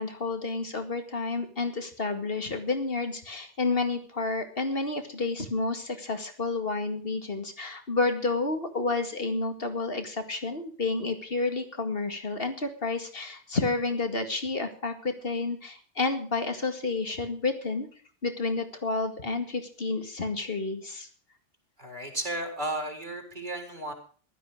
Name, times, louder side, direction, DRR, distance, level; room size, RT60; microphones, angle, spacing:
voice 1, 0.0-17.9 18.2-21.1, left 3 dB, 55° left, 7 dB, 2.3 m, -30 dB
voice 2, 21.8-23.9, right 1 dB, 40° right, 2 dB, 4.1 m, -34 dB
15.5 x 13.0 x 4.8 m, 0.43 s
omnidirectional pair, 1.2 m